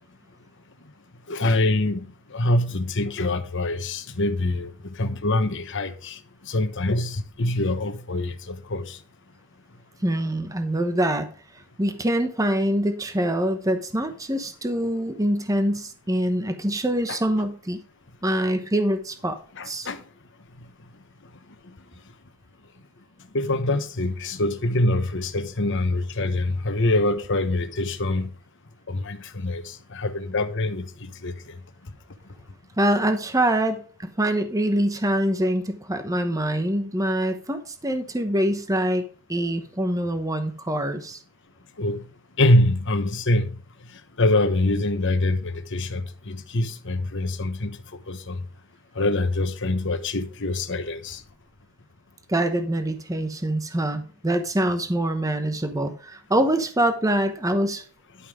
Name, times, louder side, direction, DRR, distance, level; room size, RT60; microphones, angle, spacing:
voice 1, 1.3-9.0 17.1-17.2 19.5-20.0 23.3-28.3 28.9-31.6 41.8-42.0 42.4-43.6 44.2-47.8 48.1-48.4 48.9-51.2, left 2 dB, 60° left, 1.1 m, -25 dB
voice 2, 10.0-11.3 11.8-17.8 18.2-19.4 19.6-19.9 32.8-41.2 52.3-57.8, right 1 dB, 15° right, 0.9 m, -24 dB
11.5 x 5.5 x 4.9 m
head